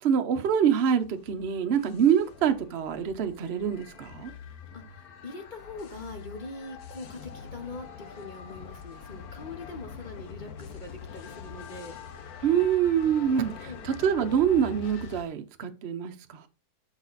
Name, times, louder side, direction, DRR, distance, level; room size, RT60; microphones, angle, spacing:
voice 1, 0.0-4.3 12.4-16.4, right 8 dB, 50° right, 0.9 m, -25 dB
sound 1, 1.0-15.2, left 7 dB, 70° left, 1.4 m, -44 dB
voice 2, 4.7-12.0 13.6-13.8, left 3 dB, 35° left, 0.9 m, -42 dB
6.6 x 4.9 x 4.0 m
omnidirectional pair, 1.7 m